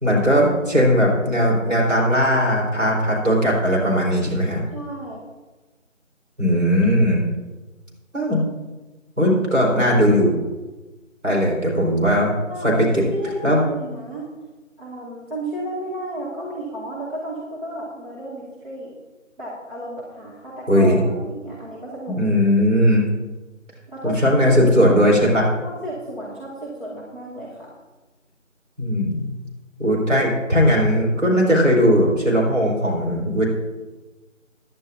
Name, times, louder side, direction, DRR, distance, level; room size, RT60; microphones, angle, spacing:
voice 1, 0.0-4.6 6.4-7.3 8.1-8.4 9.2-10.3 11.2-12.3 12.6-13.0 13.4-13.6 20.7-21.0 22.1-23.0 24.0-25.5 28.8-29.3 29.8-33.5, equal, 70° right, -2 dB, 4.6 m, -18 dB
voice 2, 4.7-5.3 12.5-14.3 14.8-18.9 19.4-22.2 23.9-24.6 25.6-27.7, right 1 dB, 40° right, -7 dB, 2.5 m, -33 dB
16.5 x 11.0 x 2.8 m, 1.2 s
figure-of-eight pair, 175°, 40 cm